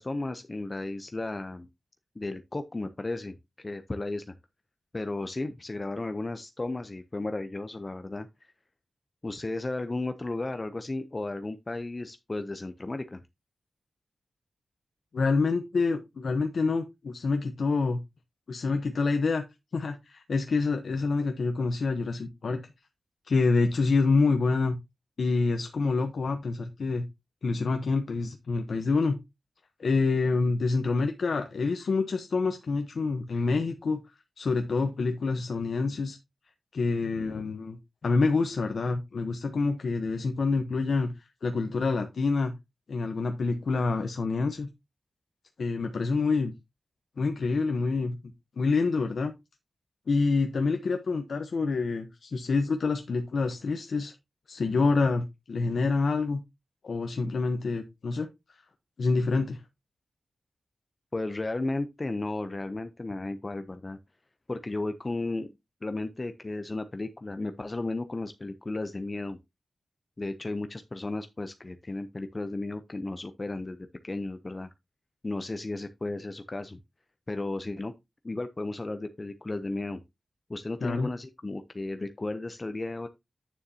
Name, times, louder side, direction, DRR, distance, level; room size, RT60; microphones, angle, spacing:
voice 1, 0.0-1.7 2.2-4.3 4.9-8.3 9.2-13.2 57.2-57.3 61.1-64.0 64.5-65.5 65.8-69.4 70.2-74.7 75.2-76.8 77.3-77.9 78.2-80.0 80.5-83.1, left 2 dB, 20° left, 0.5 m, -34 dB
voice 2, 15.1-18.0 18.5-19.4 19.7-22.6 23.2-24.8 25.2-27.1 27.4-29.2 29.8-34.0 34.4-36.2 36.7-37.8 38.0-42.5 42.9-44.7 45.6-46.5 47.2-49.3 50.1-54.1 54.5-56.4 56.8-58.3 59.0-59.6 80.8-81.1, left 4 dB, 55° left, 0.8 m, -27 dB
9.1 x 7.0 x 2.7 m
wide cardioid pair, 175°, 0 cm